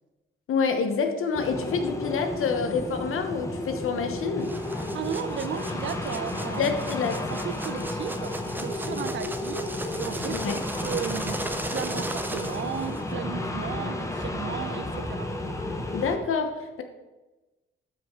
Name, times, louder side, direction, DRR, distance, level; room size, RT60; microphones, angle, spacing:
voice 1, 0.5-4.5 6.6-7.2 10.3-10.6 15.9-16.8, left 5 dB, 80° left, 1.2 m, -27 dB
sound 1, 1.3-16.2, left 2 dB, 15° left, 1.0 m, -32 dB
sound 2, 4.4-13.1, right 1 dB, 10° right, 0.6 m, -37 dB
voice 2, 4.9-6.8 7.3-10.5 10.8-15.3, right 8 dB, 65° right, 0.7 m, -35 dB
12.5 x 5.9 x 3.8 m
wide cardioid pair, 130°, 21 cm